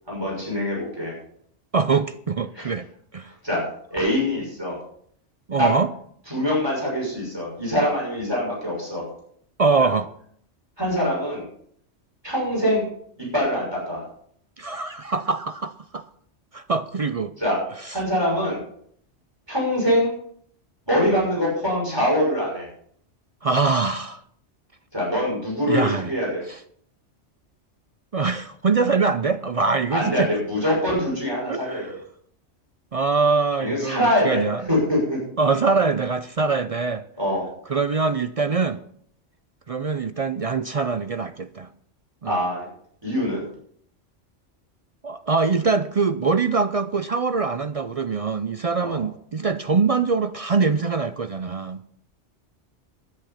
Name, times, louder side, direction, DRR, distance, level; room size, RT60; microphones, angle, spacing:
voice 1, 0.1-1.1 2.5-2.7 3.4-4.8 5.6-5.7 6.3-9.1 9.8-9.9 10.8-11.4 12.2-12.9 13.2-14.0 17.4-17.6 17.9-18.6 19.5-20.1 20.9-22.7 24.9-26.4 29.9-31.9 33.6-35.2 37.2-37.5 42.2-42.7 43.0-43.4 48.8-49.0, equal, 20° right, 6.2 m, -24 dB
voice 2, 1.7-2.9 3.1-3.3 5.5-5.9 9.6-10.1 14.6-16.0 16.5-17.3 23.4-24.2 25.7-26.1 28.1-30.3 31.5-31.9 32.9-34.7 35.4-37.0 37.7-38.8 39.7-41.7 42.2-42.4 45.0-51.8, right 4 dB, 45° right, 0.4 m, -23 dB
11.0 x 11.0 x 5.7 m
omnidirectional pair, 1.2 m